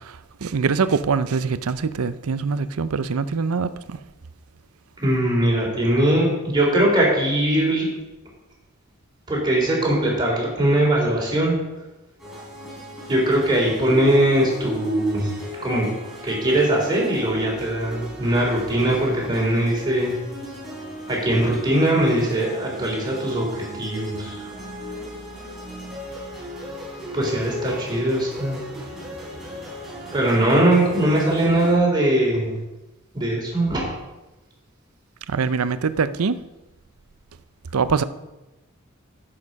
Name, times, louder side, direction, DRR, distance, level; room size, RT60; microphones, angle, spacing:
voice 1, 0.4-4.0 35.3-36.4 37.7-38.0, right 5 dB, 85° right, 0.6 m, -23 dB
voice 2, 5.0-7.9 9.3-11.6 13.1-15.3 15.6-15.9 16.2-20.1 21.1-24.5 27.1-28.6 30.1-32.6 33.1-33.8, right 1 dB, 20° right, 3.8 m, -21 dB
sound 1, 12.2-31.7, equal, ahead, 3.5 m, -36 dB
11.0 x 7.8 x 5.3 m
head